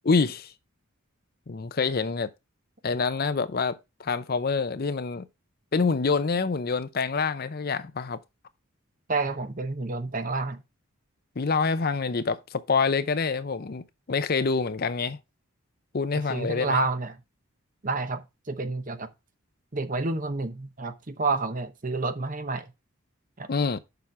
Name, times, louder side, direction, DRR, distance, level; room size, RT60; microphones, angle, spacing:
voice 1, 0.1-0.5 1.5-2.3 2.8-5.3 5.7-8.2 11.4-15.2 15.9-16.8 23.5-23.8, left 4 dB, 45° left, 0.5 m, -26 dB
voice 2, 9.1-10.6 16.1-17.2 17.8-19.1 19.7-22.7 23.4-23.5, right 3 dB, 35° right, 0.9 m, -29 dB
6.9 x 5.8 x 4.7 m
head